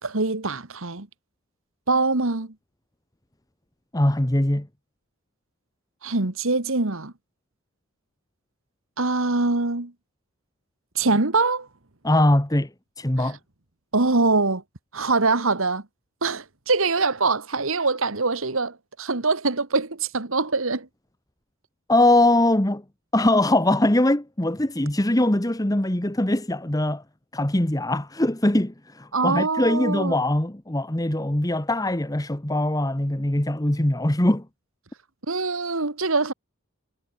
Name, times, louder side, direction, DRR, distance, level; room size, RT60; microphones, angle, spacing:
voice 1, 0.0-1.1 1.9-2.5 6.0-7.1 9.0-9.9 11.0-11.7 13.2-13.4 13.9-14.6 14.9-15.8 16.2-20.9 29.1-30.2 35.3-36.3, right 3 dB, 70° right, 1.8 m, -23 dB
voice 2, 3.9-4.7 12.0-12.7 13.0-13.4 21.9-22.8 23.1-27.0 27.3-34.4, left 1 dB, 15° left, 1.2 m, -22 dB
head